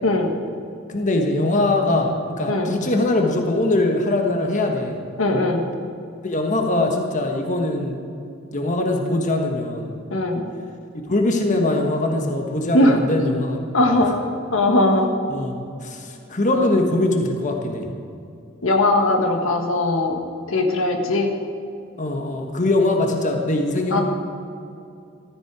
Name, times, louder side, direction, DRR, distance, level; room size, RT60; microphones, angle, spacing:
voice 1, 0.9-5.0 6.2-8.0 8.5-9.9 11.1-13.6 13.9-14.1 15.3-17.9 22.0-24.0, left 2 dB, 40° left, 3 dB, 1.4 m, -22 dB
voice 2, 5.2-5.6 10.1-10.4 12.7-13.0 13.7-14.1 14.5-15.1 18.6-20.2 20.5-21.3 23.9-24.0, left 2 dB, 80° left, 3 dB, 1.6 m, -19 dB
14.5 x 13.5 x 4.8 m, 2.6 s
head